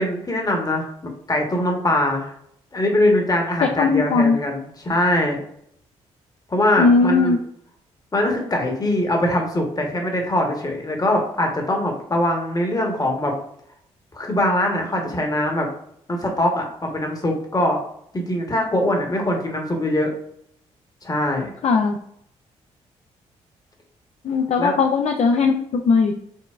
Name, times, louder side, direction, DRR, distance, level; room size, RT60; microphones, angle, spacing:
voice 1, 0.0-2.3 2.7-5.4 6.5-7.4 8.1-13.4 14.1-15.7 16.1-17.8 18.1-20.1 21.0-21.5 24.6-24.7, left 1 dB, 25° left, 2 dB, 1.0 m, -22 dB
voice 2, 3.8-4.4 6.8-7.4 21.6-22.0 24.2-26.1, left 4 dB, 50° left, 3 dB, 0.4 m, -18 dB
4.4 x 2.0 x 2.3 m, 0.70 s
hypercardioid pair, 50°, 14 cm